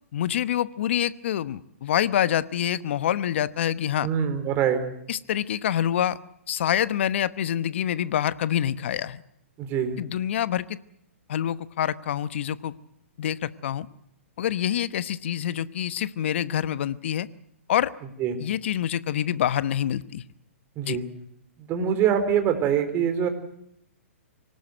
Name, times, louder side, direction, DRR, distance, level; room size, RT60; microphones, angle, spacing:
voice 1, 0.1-4.1 5.1-6.2 6.5-9.2 10.0-10.8 11.3-12.7 13.2-13.9 14.4-17.3 17.7-17.9 18.4-20.2 20.8-21.0, left 10 dB, 60° left, 15 dB, 1.0 m, -26 dB
voice 2, 4.0-4.8 9.6-10.0 18.2-18.4 20.8-21.0 21.6-23.3, right 8 dB, 30° right, 7 dB, 4.1 m, -24 dB
25.0 x 18.5 x 7.9 m, 0.75 s
hypercardioid pair, 125°, 7 cm